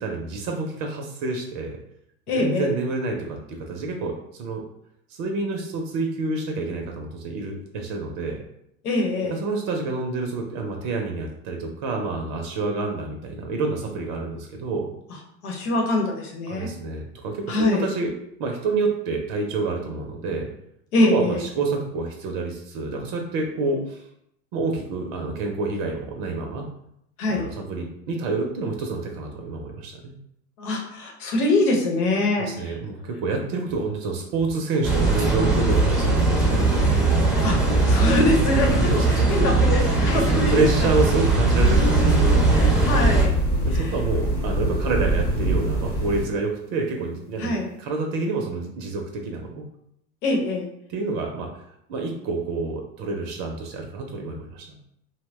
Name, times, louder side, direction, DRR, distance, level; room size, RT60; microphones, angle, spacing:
voice 1, 0.0-1.8 2.3-4.6 5.1-8.4 9.3-14.9 16.5-18.1 18.4-20.5 21.0-24.0 24.5-26.7 27.3-30.1 32.4-36.7 38.7-39.5 40.1-40.2 40.5-42.4 43.6-49.7 50.9-51.5 51.9-54.7, right 3 dB, 50° right, 2 dB, 0.6 m, -28 dB
voice 2, 2.3-2.7 8.8-9.4 15.4-16.7 17.5-17.8 20.9-21.4 27.2-27.5 30.6-32.8 37.4-37.6 37.9-40.9 42.5-43.3 43.7-43.9 47.4-47.7 50.2-50.7, left 2 dB, 75° left, 1 dB, 1.0 m, -24 dB
sound 1, 34.8-43.3, right 2 dB, ahead, 0.7 m, -20 dB
sound 2, 41.5-46.2, right 1 dB, 20° left, 1.0 m, -23 dB
2.7 x 2.1 x 3.2 m, 0.74 s
hypercardioid pair, 90°, 45 cm